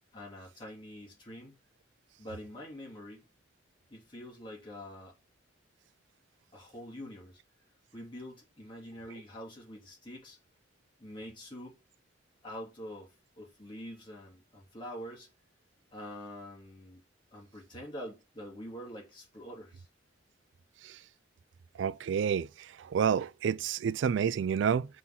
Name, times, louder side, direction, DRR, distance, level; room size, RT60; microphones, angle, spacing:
voice 1, 0.1-1.6 2.2-3.3 3.9-5.1 6.5-7.4 7.9-10.4 11.0-11.8 12.4-15.3 15.9-17.0 17.3-19.9, equal, 25° left, 3.0 m, -45 dB
voice 2, 21.8-22.5 22.9-24.9, right 7 dB, 75° right, 0.3 m, -28 dB
5.5 x 4.1 x 5.8 m
head